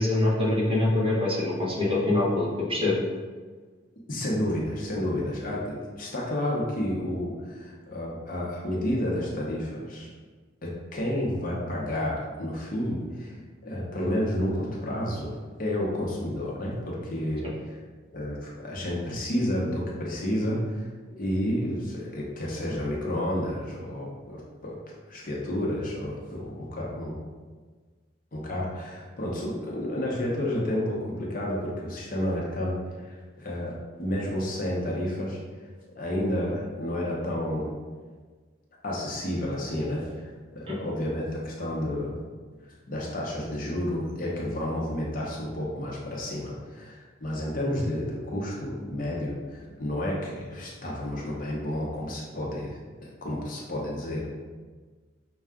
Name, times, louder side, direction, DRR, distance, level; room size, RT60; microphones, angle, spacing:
voice 1, 0.0-3.0 40.7-40.8, left 2 dB, 30° right, -6 dB, 1.0 m, -24 dB
voice 2, 4.1-10.1 10.6-13.4 13.6-17.5 18.1-20.9 21.2-24.8 25.1-27.2 28.3-35.4 36.0-37.7 38.8-40.2 40.5-42.2 42.9-54.3, left 1 dB, 45° left, -3 dB, 0.8 m, -30 dB
5.4 x 2.3 x 3.6 m, 1.5 s
head